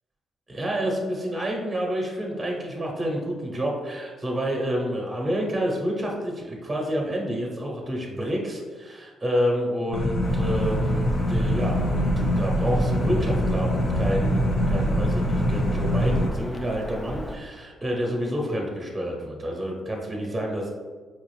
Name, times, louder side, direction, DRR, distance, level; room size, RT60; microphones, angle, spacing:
voice 1, 0.5-20.7, equal, 15° right, -1 dB, 0.8 m, -29 dB
sound 1, 9.9-16.3, equal, 65° left, 0.6 m, -24 dB
Bird vocalization bird call bird song, 10.2-17.4, equal, 15° left, 0.4 m, -37 dB
4.5 x 2.4 x 3.2 m, 1.4 s
cardioid pair, 90°, 0 cm